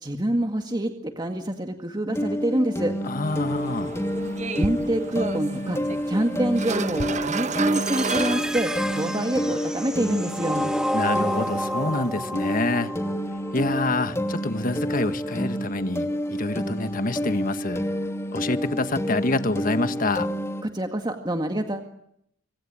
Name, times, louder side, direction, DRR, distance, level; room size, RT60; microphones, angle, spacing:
voice 1, 0.0-2.9 4.6-5.8 6.1-10.7 20.6-21.8, right 1 dB, 25° right, 5 dB, 2.0 m, -26 dB
sound 1, 2.1-20.6, equal, 15° left, 2.7 m, -29 dB
voice 2, 3.0-4.0 10.9-12.9 13.5-17.8 18.3-20.3, left 2 dB, 50° left, 10 dB, 1.6 m, -27 dB
sound 2, 3.2-9.0, right 4 dB, 40° right, 1.0 m, -32 dB
sound 3, 7.7-13.7, equal, 5° right, 1.8 m, -30 dB
26.0 x 25.5 x 8.8 m, 0.74 s
head